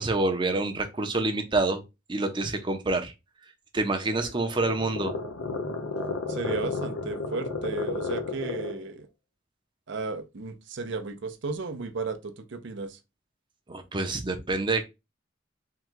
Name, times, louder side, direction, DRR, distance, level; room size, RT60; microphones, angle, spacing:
voice 1, 0.0-1.8 2.1-3.1 3.7-5.1 13.7-14.8, right 2 dB, 25° right, 0.6 m, -27 dB
sound 1, 3.9-8.9, left 3 dB, 80° left, 0.7 m, -33 dB
voice 2, 6.3-9.1 9.9-13.0, right 4 dB, 65° right, 0.6 m, -34 dB
3.7 x 2.3 x 4.4 m
head